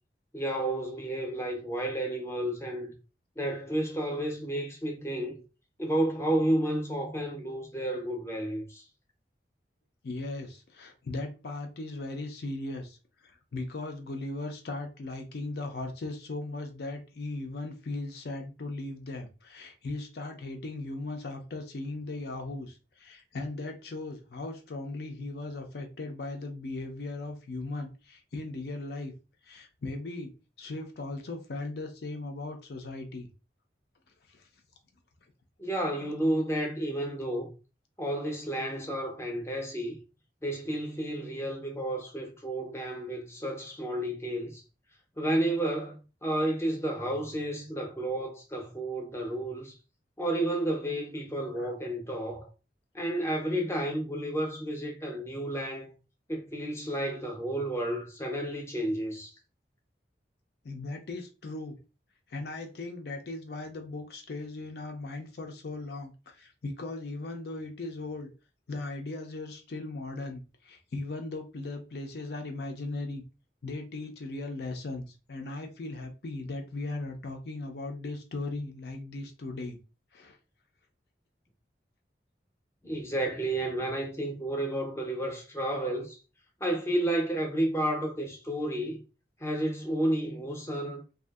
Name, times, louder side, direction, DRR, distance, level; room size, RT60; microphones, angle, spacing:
voice 1, 0.3-2.9 3.4-5.4 5.8-8.8 35.6-37.5 38.0-40.0 40.4-44.6 45.2-49.7 50.2-52.5 52.9-55.9 56.3-59.3 82.8-86.2 86.6-89.0 89.4-91.0, right 1 dB, 15° left, 0.6 m, -31 dB
voice 2, 10.0-29.1 29.4-30.3 30.6-33.3 34.3-34.5 51.6-51.7 60.6-61.8 62.3-68.3 68.7-73.2 73.6-79.8 80.1-80.4, left 2 dB, 65° left, 0.5 m, -38 dB
2.6 x 2.4 x 2.3 m
head